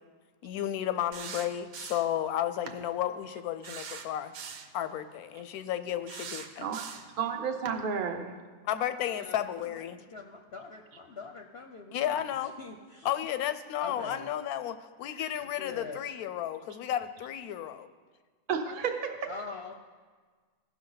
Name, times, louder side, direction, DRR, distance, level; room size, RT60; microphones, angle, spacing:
voice 1, 0.4-4.3 4.7-6.6 8.6-10.0 11.9-12.5 13.0-17.9, left 11 dB, 90° left, 11 dB, 1.1 m, -33 dB
sound 1, 1.1-2.2 2.7-2.8 3.6-4.7 6.1-7.2 7.7-7.8, right 6 dB, 75° right, 1.2 m, -42 dB
voice 2, 7.2-8.4 18.5-19.2, right 6 dB, 45° right, 4 dB, 0.8 m, -31 dB
voice 3, 9.0-13.1 13.8-14.3 15.4-16.0 19.3-19.7, left 4 dB, 60° left, 3 dB, 0.7 m, -44 dB
15.5 x 6.0 x 3.9 m, 1.5 s
omnidirectional pair, 1.5 m